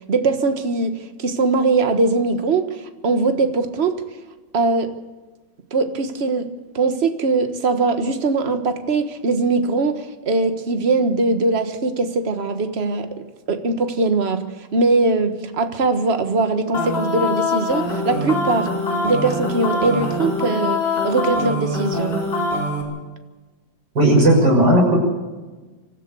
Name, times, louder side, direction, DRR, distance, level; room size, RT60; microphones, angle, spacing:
voice 1, 0.1-4.0 4.5-4.9 5.7-13.1 13.5-18.7 19.0-22.2, right 3 dB, 35° right, 8 dB, 1.5 m, -21 dB
sound 1, 16.7-22.8, left 2 dB, 30° left, 4.9 m, -23 dB
voice 2, 24.0-25.0, right 1 dB, 60° right, 0 dB, 7.2 m, -14 dB
25.5 x 15.0 x 7.0 m, 1.2 s
omnidirectional pair, 2.1 m